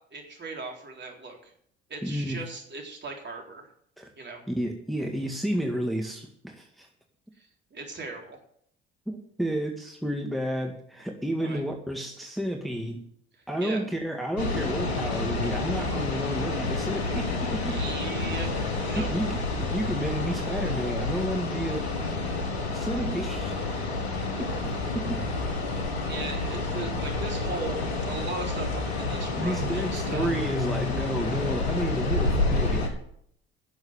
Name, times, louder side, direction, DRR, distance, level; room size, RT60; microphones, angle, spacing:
voice 1, 0.1-1.5 1.9-3.7 4.2-4.4 7.4-8.4 11.4-11.6 13.4-13.8 17.7-19.1 26.1-30.5, right 3 dB, 35° right, 1 dB, 3.8 m, -38 dB
voice 2, 2.0-2.4 4.0-4.1 4.5-6.9 9.1-13.0 13.5-17.9 18.9-21.9 22.7-23.5 24.4-25.3 29.4-33.0, right 1 dB, ahead, 2 dB, 2.0 m, -31 dB
sound 1, 14.4-32.9, left 3 dB, 85° left, 1.6 m, -29 dB
11.5 x 7.1 x 8.8 m, 0.68 s
figure-of-eight pair, 50°, 31 cm